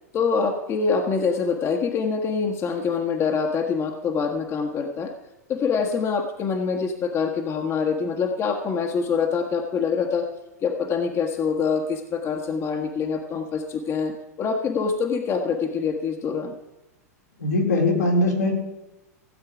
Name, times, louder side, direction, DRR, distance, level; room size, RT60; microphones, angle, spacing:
voice 1, 0.1-5.1 5.5-10.3 10.6-16.5, left 5 dB, 30° left, 4 dB, 1.5 m, -25 dB
voice 2, 17.4-18.6, left 2 dB, 85° left, -2 dB, 3.9 m, -21 dB
16.5 x 8.1 x 5.0 m, 0.98 s
hypercardioid pair, 100°, 9 cm